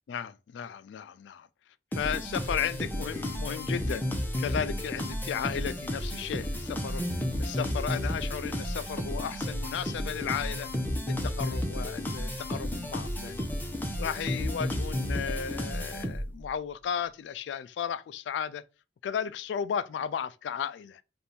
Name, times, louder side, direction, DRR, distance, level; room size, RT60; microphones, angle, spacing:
voice 1, 0.1-1.5 1.9-4.1 4.4-10.7 11.1-13.5 14.0-18.6 19.0-21.0, left 8 dB, 85° left, 0.3 m, -34 dB
sound 1, 1.9-16.5, left 1 dB, 10° left, 0.8 m, -32 dB
3.5 x 2.5 x 4.2 m
head